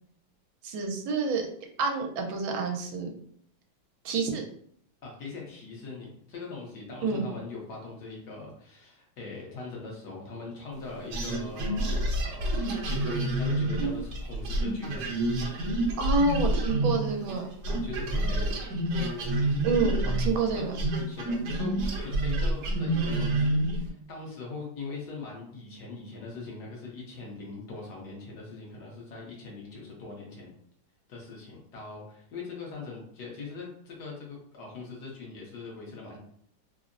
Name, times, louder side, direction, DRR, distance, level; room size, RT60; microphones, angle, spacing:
voice 1, 0.6-1.4 1.8-3.2 4.0-4.4 7.0-7.3 16.0-17.5 19.6-20.7, right 4 dB, 85° right, 2 dB, 1.4 m, -28 dB
voice 2, 5.0-15.0 17.7-18.6 20.2-20.6 21.1-21.7 22.0-30.5 31.1-36.2, left 3 dB, 65° left, -2 dB, 1.2 m, -41 dB
sound 1, 11.1-17.4 17.6-23.9, right 1 dB, 65° right, 1.1 m, -28 dB
3.5 x 2.0 x 2.4 m, 0.64 s
omnidirectional pair, 2.1 m